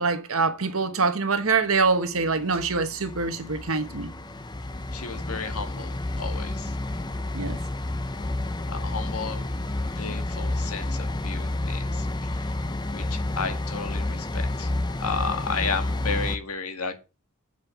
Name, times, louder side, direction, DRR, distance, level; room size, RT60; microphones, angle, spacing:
voice 1, 0.0-4.1 7.3-7.6, right 4 dB, 70° right, 1.2 m, -24 dB
sound 1, 2.1-16.4, left 2 dB, 20° left, 0.7 m, -30 dB
voice 2, 4.9-6.8 8.7-9.5 10.0-12.5 12.9-14.7 15.0-17.0, left 5 dB, 80° left, 1.8 m, -33 dB
8.0 x 5.3 x 6.9 m
head